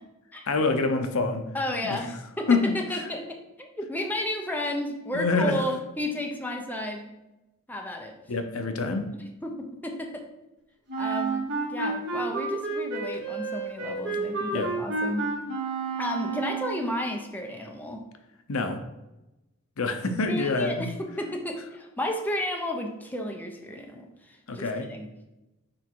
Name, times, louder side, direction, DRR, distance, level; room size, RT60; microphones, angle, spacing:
voice 1, 0.5-1.5 1.8-2.0 2.5-3.1 5.1-5.7 8.3-9.1 14.5-14.7 18.5-18.8 19.8-20.9 24.5-24.9, left 3 dB, 70° left, 7 dB, 0.7 m, -26 dB
voice 2, 1.5-7.1 7.7-8.1 9.4-10.3 11.0-11.4 11.7-15.3 16.0-18.0 20.3-25.1, left 1 dB, 10° left, 2 dB, 0.8 m, -32 dB
Wind instrument woodwind instrument, 10.9-16.8, right 3 dB, 55° right, 1.9 m, -30 dB
6.2 x 4.7 x 4.6 m, 0.97 s
head